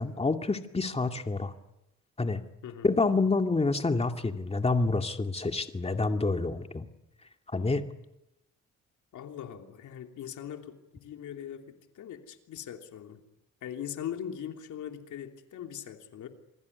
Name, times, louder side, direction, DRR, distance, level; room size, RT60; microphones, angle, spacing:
voice 1, 0.0-1.5 2.2-2.4 2.8-6.9 7.5-7.8, left 3 dB, 20° left, 6 dB, 2.3 m, -28 dB
voice 2, 9.1-13.2 13.6-16.3, left 9 dB, 75° left, 4 dB, 3.0 m, -41 dB
28.0 x 20.0 x 9.7 m, 0.89 s
cardioid pair, 90°, 30 cm